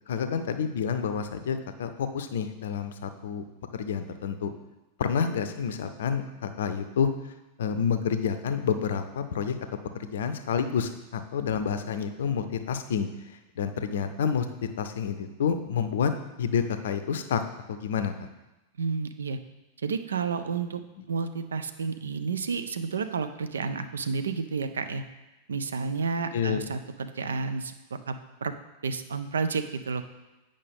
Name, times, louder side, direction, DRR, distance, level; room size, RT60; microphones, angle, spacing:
voice 1, 0.1-3.4 3.7-4.5 5.0-9.6 10.0-16.1 16.4-17.4 17.7-18.1 21.0-21.1 26.3-26.7, left 7 dB, 60° left, 9 dB, 0.5 m, -29 dB
voice 2, 18.8-19.4 19.8-20.8 21.1-25.0 25.5-27.7 28.1-28.2 28.4-28.5 28.8-30.0, right 5 dB, 70° right, 10 dB, 0.4 m, -30 dB
8.4 x 5.2 x 3.6 m, 1.0 s
figure-of-eight pair, 90°, 0 cm